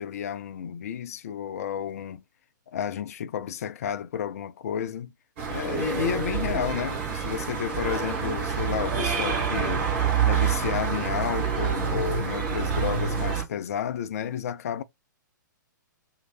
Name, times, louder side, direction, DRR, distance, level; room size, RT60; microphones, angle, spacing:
voice 1, 0.0-2.2 2.7-5.1 5.5-9.9 10.2-14.8, left 8 dB, 50° left, 0.4 m, -31 dB
sound 1, 5.4-13.4, right 6 dB, 40° right, 1.6 m, -27 dB
sound 2, 5.6-12.1, right 8 dB, 20° right, 0.6 m, -44 dB
3.1 x 2.8 x 4.3 m
figure-of-eight pair, 115°, 11 cm